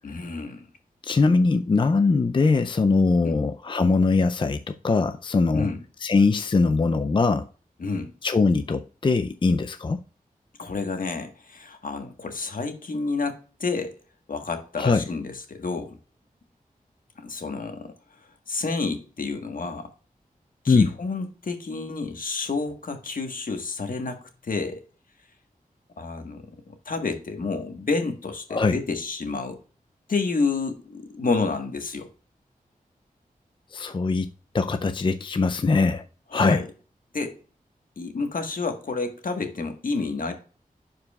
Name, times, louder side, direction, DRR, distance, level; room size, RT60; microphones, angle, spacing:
voice 1, 0.0-0.7 3.2-3.4 5.5-5.8 7.8-8.1 10.6-13.9 14.3-16.0 17.2-17.9 18.5-19.9 20.6-24.8 26.0-29.6 30.1-32.1 36.3-36.7 37.1-37.4 38.0-40.3, left 4 dB, 70° left, 1.4 m, -29 dB
voice 2, 1.0-5.7 6.0-7.5 8.2-10.0 14.8-15.0 20.7-20.9 28.5-28.8 33.7-34.3 34.5-36.0 36.3-36.6, left 4 dB, 35° left, 0.4 m, -21 dB
11.5 x 4.9 x 2.3 m
cardioid pair, 55°, 15 cm